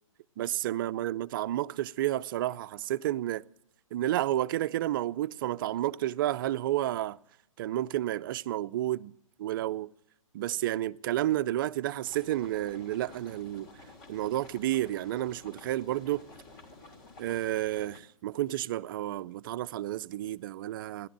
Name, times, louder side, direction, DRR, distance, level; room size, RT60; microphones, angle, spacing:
voice 1, 0.4-3.4 3.9-7.2 7.6-9.9 10.3-13.7 14.1-16.2 17.2-21.1, right 13 dB, 40° right, 0.5 m, -31 dB
sound 1, 12.0-18.0, left 3 dB, 40° left, 2.7 m, -52 dB
15.0 x 11.0 x 7.4 m
hypercardioid pair, 135°, 18 cm